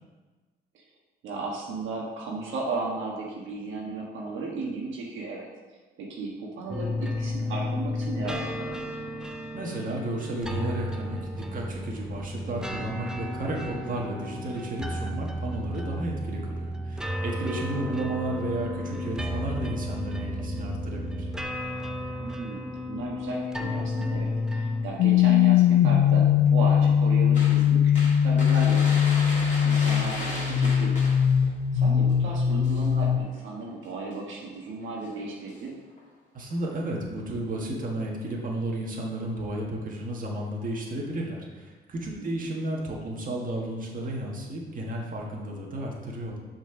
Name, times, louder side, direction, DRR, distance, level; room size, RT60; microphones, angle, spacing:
voice 1, 1.2-5.5 6.0-8.9 17.7-18.1 22.2-29.0 29.3-31.0 31.4-35.7 42.2-42.6, right 3 dB, 75° right, -2 dB, 1.3 m, -35 dB
sound 1, 6.7-24.9, left 1 dB, 5° right, 0.6 m, -33 dB
voice 2, 9.5-21.3 36.3-46.4, right 1 dB, 45° right, -2 dB, 1.7 m, -33 dB
sound 2, 25.0-33.2, left 9 dB, 85° left, 0.5 m, -21 dB
sound 3, 27.3-31.5 31.9-32.1 32.4-33.4 34.1-34.4 34.9-35.6 35.9-36.0 36.5-36.8, left 1 dB, 35° left, 2.3 m, -37 dB
6.0 x 4.5 x 5.9 m, 1.3 s
cardioid pair, 90°, 20 cm